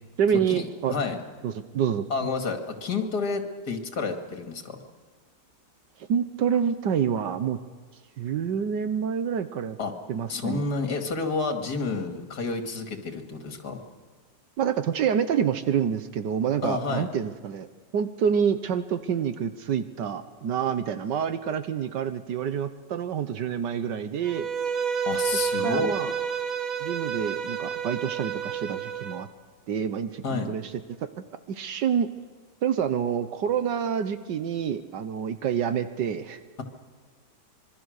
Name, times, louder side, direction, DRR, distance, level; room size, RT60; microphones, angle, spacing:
voice 1, 0.2-0.9 1.4-2.1 6.1-7.6 8.2-9.8 10.1-10.6 14.6-17.7 17.9-24.5 25.6-26.1 26.8-29.3 29.7-30.7 31.5-32.1 32.6-36.4, right 8 dB, 80° right, 10 dB, 1.6 m, -27 dB
voice 2, 2.1-4.8 9.8-9.9 10.3-13.8 16.6-17.1 25.1-25.9 30.2-30.5, left 4 dB, 65° left, 5 dB, 2.8 m, -30 dB
Bowed string instrument, 24.2-29.2, right 7 dB, 55° right, 1.7 m, -30 dB
26.0 x 23.0 x 6.5 m, 1.5 s
omnidirectional pair, 1.9 m